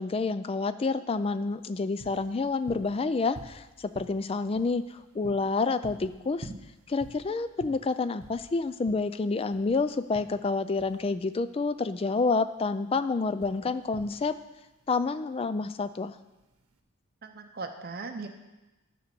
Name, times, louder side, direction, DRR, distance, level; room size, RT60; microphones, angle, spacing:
voice 1, 0.0-6.5 6.9-14.4 14.9-16.2, left 4 dB, 25° left, 13 dB, 0.3 m, -28 dB
sound 1, 1.1-16.8, right 2 dB, 80° right, 0.9 m, -49 dB
voice 2, 17.2-18.3, right 3 dB, 45° right, 6 dB, 0.6 m, -38 dB
11.0 x 5.1 x 6.8 m, 1.1 s
head